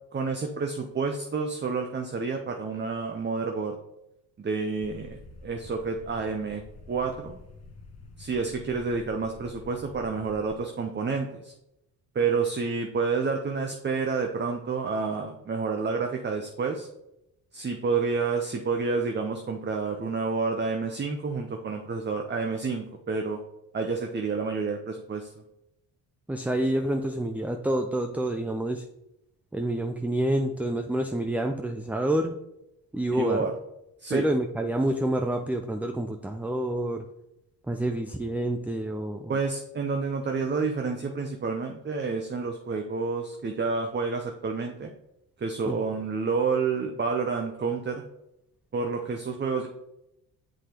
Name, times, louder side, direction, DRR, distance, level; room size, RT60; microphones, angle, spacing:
voice 1, 0.1-3.8 4.4-6.6 6.9-7.4 8.2-11.5 12.1-16.9 17.5-23.4 23.7-25.3 33.1-33.5 34.0-34.3 39.3-44.9 45.4-48.0 48.7-49.7, right 4 dB, 25° right, 4 dB, 0.7 m, -29 dB
sound 1, 4.8-10.6, left 3 dB, 35° left, 1.1 m, -48 dB
voice 2, 26.3-28.8 29.5-32.4 32.9-33.4 34.1-37.0 37.7-39.4 45.7-45.8, right 1 dB, 5° right, 6 dB, 0.3 m, -28 dB
7.5 x 4.9 x 2.9 m, 0.85 s
supercardioid pair, 55°, 43 cm